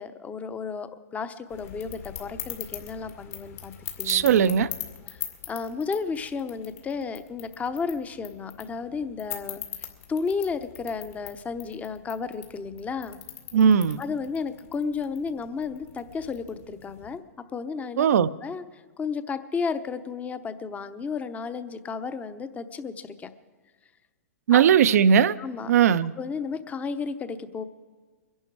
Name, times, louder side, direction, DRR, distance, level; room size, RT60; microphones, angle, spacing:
voice 1, 0.0-3.7 4.0-4.4 5.1-13.2 14.0-17.2 17.5-18.1 18.4-23.3 24.5-24.6 25.4-25.7 26.2-27.6, left 5 dB, 15° left, 0.8 m, -33 dB
sound 1, 1.5-17.2, left 10 dB, 60° left, 2.2 m, -42 dB
voice 2, 4.1-4.7 13.5-14.0 18.0-18.3 24.5-25.4 25.7-26.1, right 8 dB, 70° right, 0.6 m, -18 dB
23.0 x 11.0 x 4.7 m
hypercardioid pair, 120°, 9 cm